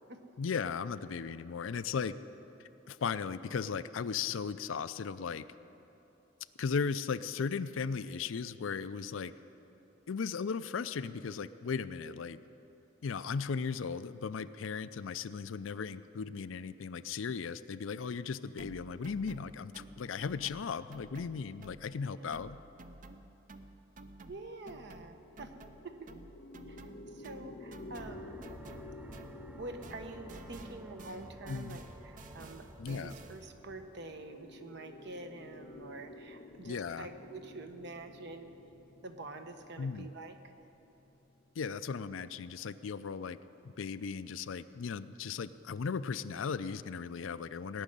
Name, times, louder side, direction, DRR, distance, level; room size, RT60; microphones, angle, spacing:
voice 1, 0.4-2.1 2.9-5.4 6.6-9.3 10.1-12.4 13.0-22.6 31.5-31.8 32.8-33.1 36.6-37.1 39.8-40.1 41.6-43.4 43.8-47.8, left 5 dB, 85° left, 14 dB, 0.5 m, -36 dB
sound 1, 18.6-22.0 22.3-29.6 29.8-33.6, right 2 dB, 40° right, 0.6 m, -53 dB
voice 2, 22.0-22.3 24.3-25.5 25.8-25.9 26.7-28.4 29.6-38.5 39.0-40.3, right 2 dB, 60° right, 6 dB, 1.0 m, -47 dB
sound 2, 25.0-42.4, left 2 dB, 50° left, 0.7 m, -52 dB
sound 3, 27.9-34.6, right 1 dB, 10° right, 0.3 m, -53 dB
17.5 x 6.3 x 9.9 m, 3.0 s
head